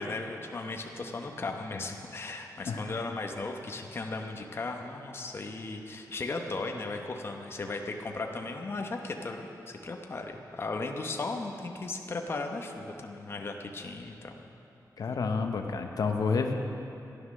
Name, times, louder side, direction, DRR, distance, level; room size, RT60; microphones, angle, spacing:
voice 1, 0.0-14.4, left 3 dB, 35° left, 3 dB, 0.9 m, -36 dB
voice 2, 15.0-16.5, left 4 dB, 65° left, 4 dB, 0.8 m, -29 dB
14.5 x 9.8 x 6.4 m, 2.8 s
wide cardioid pair, 170°, 7 cm